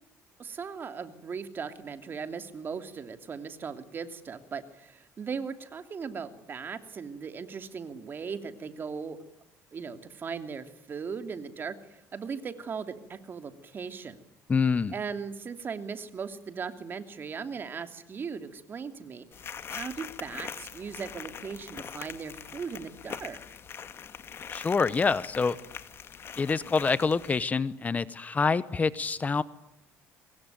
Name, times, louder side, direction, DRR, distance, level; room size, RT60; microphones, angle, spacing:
voice 1, 0.4-9.2 9.7-14.2 14.9-19.3 19.7-23.4, right 5 dB, 35° right, 8 dB, 2.8 m, -38 dB
voice 2, 14.5-14.9 24.5-25.6 26.4-29.4, left 4 dB, 25° left, 16 dB, 0.9 m, -26 dB
sound 1, 19.3-27.4, left 7 dB, 45° left, 2.0 m, -42 dB
25.0 x 21.5 x 9.2 m, 0.87 s
cardioid pair, 105°, 6 cm